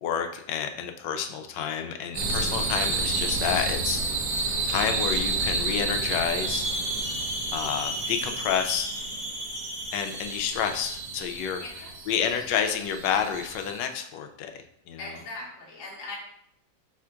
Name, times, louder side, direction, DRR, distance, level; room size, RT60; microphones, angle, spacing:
voice 1, 0.0-6.7 7.5-8.9 9.9-11.6 12.1-14.5 14.9-15.0, left 8 dB, 80° left, 5 dB, 1.2 m, -29 dB
sound 1, 2.1-13.8, right 3 dB, 60° right, 0.9 m, -30 dB
voice 2, 11.6-11.9 15.0-16.2, left 2 dB, 50° left, -5 dB, 1.2 m, -40 dB
4.3 x 2.4 x 4.4 m, 0.70 s
omnidirectional pair, 2.0 m